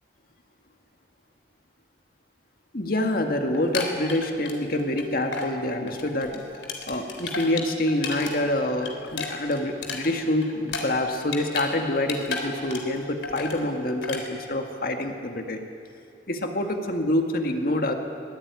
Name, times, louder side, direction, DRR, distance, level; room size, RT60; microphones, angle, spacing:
voice 1, 2.7-6.4 6.9-15.6 16.3-17.9, left 1 dB, 50° left, 4 dB, 1.9 m, -26 dB
sound 1, 3.5-5.0 5.3-5.5 5.9-8.3 8.6-11.7 12.0-13.0 13.2-13.6 14.0-14.2, left 4 dB, 85° left, 3.6 m, -33 dB
24.0 x 19.0 x 9.6 m, 2.6 s
head